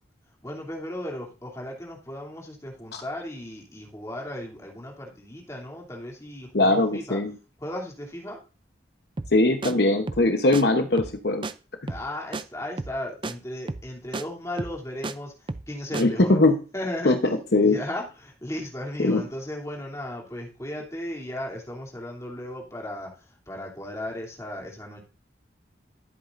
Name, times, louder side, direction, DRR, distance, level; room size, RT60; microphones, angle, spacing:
voice 1, 0.4-7.2 7.6-8.4 11.8-16.4 16.7-17.1 17.6-25.0, left 1 dB, 15° left, -1 dB, 2.9 m, -36 dB
voice 2, 6.5-7.3 9.3-11.4 15.9-16.5 17.0-17.2 17.5-17.8 19.0-19.2, left 2 dB, 60° left, 6 dB, 0.9 m, -20 dB
sound 1, 9.2-9.4 9.6-9.7 10.1-10.3 10.5-10.6 11.0-11.2 11.4-11.5 11.9-12.1 12.3-12.4 12.8-13.0 13.2-13.3 13.7-13.9 14.1-14.2 14.6-15.1 15.5-15.7 15.9-16.0, right 3 dB, 25° right, 0.4 m, -32 dB
14.5 x 8.3 x 2.6 m, 0.34 s
head